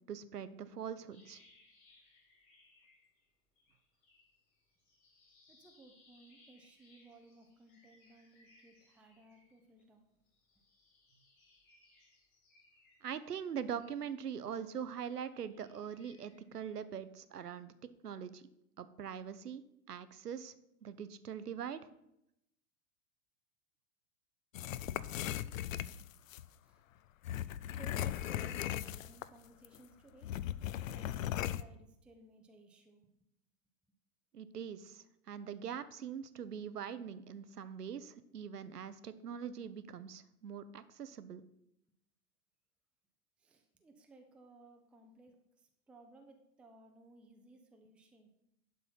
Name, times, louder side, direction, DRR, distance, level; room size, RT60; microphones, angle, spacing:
voice 1, 0.1-1.4 13.0-17.7 18.0-18.4 18.8-20.5 20.8-21.8 34.3-41.4, right 8 dB, 80° right, 13 dB, 0.7 m, -43 dB
sound 1, 1.1-3.3 3.6-9.8 10.3-14.7 15.1-16.4, left 2 dB, 40° left, 3.1 m, -68 dB
voice 2, 5.5-10.0 26.6-26.8 27.6-30.4 30.8-33.0 43.4-48.3, right 2 dB, ahead, 4 dB, 0.5 m, -59 dB
sound 2, 24.5-26.5 27.2-29.4 29.6-29.8 30.2-31.6, left 12 dB, 60° left, 0.5 m, -38 dB
11.0 x 4.0 x 5.7 m, 0.82 s
figure-of-eight pair, 90°, 46 cm